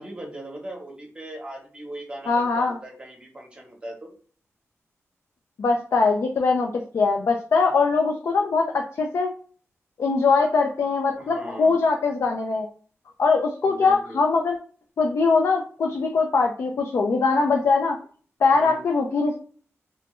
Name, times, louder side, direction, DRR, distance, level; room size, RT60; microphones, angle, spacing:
voice 1, 0.0-4.1 11.2-11.8 13.6-14.2 18.5-18.8, right 1 dB, 20° right, 0 dB, 0.8 m, -39 dB
voice 2, 2.3-2.8 5.6-9.3 10.0-12.7 13.2-14.6 15.0-18.0 18.4-19.4, left 4 dB, 65° left, 2 dB, 0.4 m, -22 dB
3.0 x 2.2 x 2.9 m, 0.43 s
wide cardioid pair, 115°, 5 cm